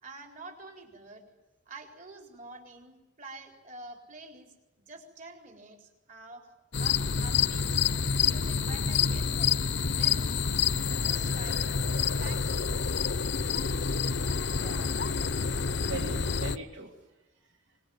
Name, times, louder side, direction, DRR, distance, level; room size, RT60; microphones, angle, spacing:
voice 1, 0.0-1.2 1.7-6.5 6.8-7.8 8.2-10.6 10.9-12.7, right 2 dB, 40° right, 3 dB, 4.4 m, -48 dB
sound 1, 6.7-16.6, left 6 dB, 60° left, 0.8 m, -28 dB
voice 2, 13.7-15.0 15.8-17.0 17.5-17.6, right 2 dB, 70° right, 1 dB, 2.7 m, -42 dB
25.5 x 21.5 x 9.5 m, 1.0 s
head